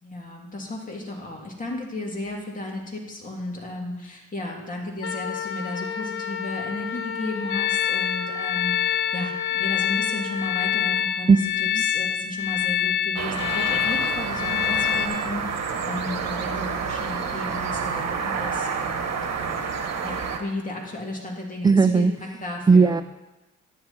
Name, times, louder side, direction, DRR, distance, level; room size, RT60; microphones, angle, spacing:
voice 1, 0.0-19.7 20.0-22.1 22.4-22.9, left 2 dB, 25° left, -1 dB, 3.0 m, -34 dB
Wind instrument woodwind instrument, 5.0-11.1, left 6 dB, 45° left, 0.9 m, -33 dB
sound 1, 7.5-15.1, left 10 dB, 85° left, 0.7 m, -25 dB
voice 2, 11.3-11.8 21.6-22.1 22.7-23.0, right 4 dB, 15° right, 11 dB, 0.3 m, -17 dB
sound 2, 13.1-20.4, right 6 dB, 60° right, 1.5 m, -29 dB
11.5 x 10.0 x 4.4 m, 1.0 s
cardioid pair, 90°, 30 cm